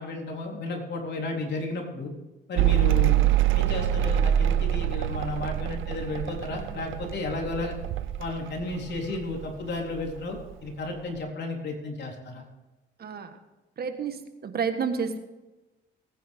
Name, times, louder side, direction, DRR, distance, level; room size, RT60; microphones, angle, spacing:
voice 1, 0.0-2.1 2.5-3.2 3.5-7.7 8.2-12.4, left 2 dB, 60° left, 0 dB, 3.8 m, -33 dB
Mechanical fan, 2.6-9.4 9.7-10.5, right 12 dB, 90° right, 0.6 m, -25 dB
voice 2, 13.0-13.4 13.8-15.2, right 6 dB, 50° right, 8 dB, 1.6 m, -30 dB
19.5 x 9.9 x 3.7 m, 1.1 s
cardioid pair, 90°, 20 cm